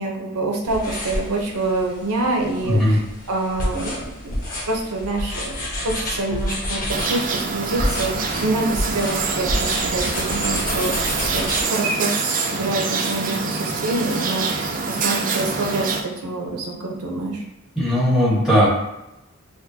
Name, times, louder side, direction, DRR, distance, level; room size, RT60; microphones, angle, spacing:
voice 1, 0.0-3.0 3.3-4.0 4.2-4.3 4.7-5.4 5.8-17.4, right 2 dB, 90° right, 1 dB, 0.8 m, -26 dB
sound 1, 0.6-11.6, left 1 dB, 40° left, 1.0 m, -29 dB
voice 2, 2.6-3.0 17.8-18.7, equal, 5° right, -9 dB, 1.2 m, -17 dB
sound 2, 6.9-16.0, right 4 dB, 35° right, 0.3 m, -25 dB
6.1 x 2.2 x 2.8 m, 0.91 s
head